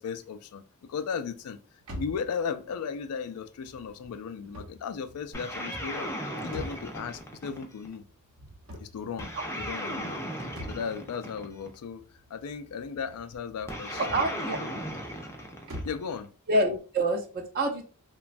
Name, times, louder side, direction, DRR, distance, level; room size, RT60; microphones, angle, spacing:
voice 1, 0.0-1.6 1.9-6.1 6.4-8.0 8.8-10.2 10.7-14.7 15.8-16.3, left 6 dB, 80° left, 0.4 m, -36 dB
sound 1, 1.8-16.2, equal, 65° right, 0.8 m, -46 dB
sound 2, 5.3-7.9 9.2-11.7 13.7-16.2, equal, 10° left, 0.5 m, -36 dB
voice 2, 14.0-14.6 16.5-17.8, right 1 dB, 45° right, 0.5 m, -27 dB
3.0 x 2.2 x 2.5 m
head